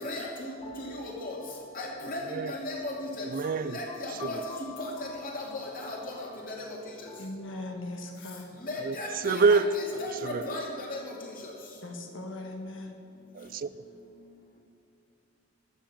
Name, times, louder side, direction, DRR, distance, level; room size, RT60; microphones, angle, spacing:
sound 1, 0.6-8.2, left 4 dB, 30° left, 1.4 m, -50 dB
voice 1, 1.8-2.2 2.5-2.9 3.2-3.3 3.7-4.4 5.3-6.0 8.6-10.6 10.9-11.0, left 2 dB, 45° left, -2 dB, 2.6 m, -35 dB
voice 2, 3.3-3.8 4.2-4.4 8.8-10.5 13.3-13.7, right 4 dB, 45° right, 14 dB, 0.3 m, -27 dB
voice 3, 7.2-8.5 11.8-12.9, left 2 dB, 70° left, 3 dB, 1.4 m, -39 dB
13.0 x 7.2 x 7.3 m, 2.6 s
head